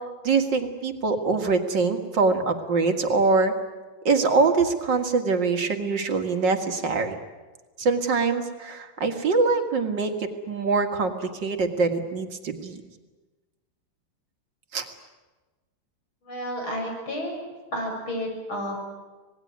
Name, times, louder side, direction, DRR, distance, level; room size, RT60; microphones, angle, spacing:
voice 1, 0.2-3.5 4.0-7.2 7.8-12.8 14.7-14.9, right 4 dB, 60° right, 5 dB, 2.5 m, -24 dB
voice 2, 16.2-17.4 17.7-19.0, equal, 90° left, 1 dB, 7.7 m, -31 dB
26.5 x 19.5 x 9.5 m, 1.2 s
omnidirectional pair, 2.2 m